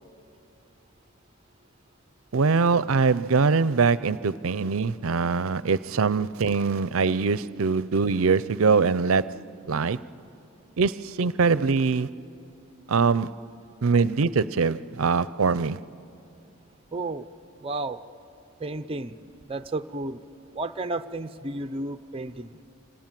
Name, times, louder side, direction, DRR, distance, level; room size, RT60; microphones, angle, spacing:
voice 1, 2.3-9.4 9.7-10.0 10.8-12.2 12.9-13.3 13.8-15.8, right 4 dB, 70° right, 0.6 m, -23 dB
voice 2, 16.9-17.3 17.6-18.0 18.6-19.2 19.5-20.2 20.5-22.6, right 2 dB, 25° right, 0.6 m, -32 dB
28.5 x 26.5 x 7.6 m
head